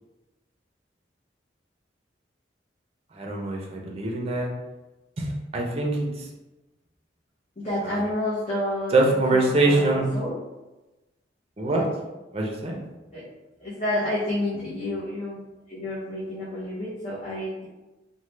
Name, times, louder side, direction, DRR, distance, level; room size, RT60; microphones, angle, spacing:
voice 1, 3.1-4.5 5.2-6.3 7.8-8.0 8.9-10.1 11.6-11.9 12.3-12.8, right 2 dB, 35° right, -1 dB, 0.5 m, -24 dB
voice 2, 7.6-10.3 13.1-13.3 13.6-15.4 15.7-17.7, left 1 dB, 40° left, -9 dB, 0.7 m, -30 dB
3.1 x 2.1 x 3.2 m, 1.1 s
head